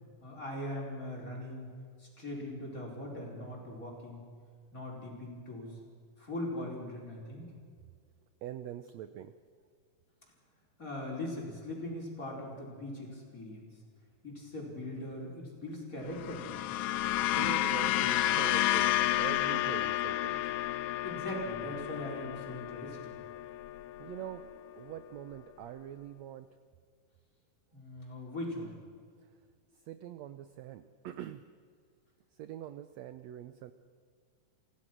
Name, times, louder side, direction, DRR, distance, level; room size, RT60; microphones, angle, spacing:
voice 1, 0.2-1.7 2.0-4.3 4.7-5.8 6.2-7.5 10.8-13.7 14.2-16.6 21.0-23.2 27.7-28.7, left 1 dB, 25° left, -1 dB, 4.9 m, -40 dB
voice 2, 8.4-9.4 17.2-20.5 24.0-26.6 29.2-29.3 29.7-31.5 32.3-33.7, right 11 dB, 80° right, 11 dB, 1.6 m, -44 dB
sound 1, 16.1-24.6, left 14 dB, 80° left, 1.7 m, -31 dB
27.5 x 16.5 x 6.1 m, 2.1 s
omnidirectional pair, 3.9 m